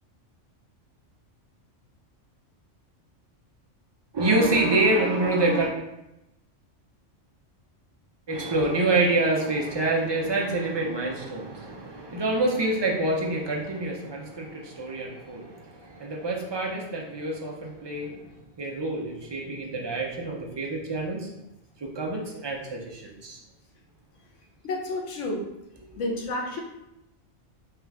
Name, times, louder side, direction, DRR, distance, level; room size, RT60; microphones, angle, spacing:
voice 1, 4.1-5.7 8.3-18.3 18.6-21.3 21.8-23.4, right 2 dB, 40° right, -1 dB, 0.4 m, -26 dB
voice 2, 24.6-25.5 26.0-26.6, left 2 dB, 80° left, 0 dB, 1.1 m, -30 dB
4.5 x 2.4 x 3.4 m, 0.90 s
omnidirectional pair, 1.2 m